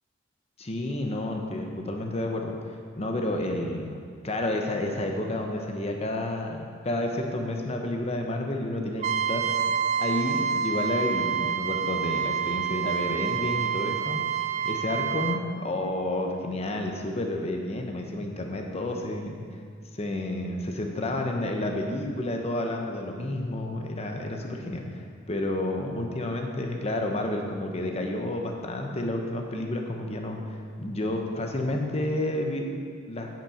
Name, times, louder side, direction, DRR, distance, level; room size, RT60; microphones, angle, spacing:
voice 1, 0.6-2.5 3.0-4.0 4.2-9.6 10.0-14.2 14.6-19.4 19.9-24.8 25.3-30.4 30.8-32.8 33.1-33.3, left 1 dB, 30° left, 2 dB, 0.9 m, -30 dB
Trumpet, 9.0-15.4, right 7 dB, 35° right, 0.3 m, -28 dB
9.7 x 6.1 x 4.9 m, 2.1 s
head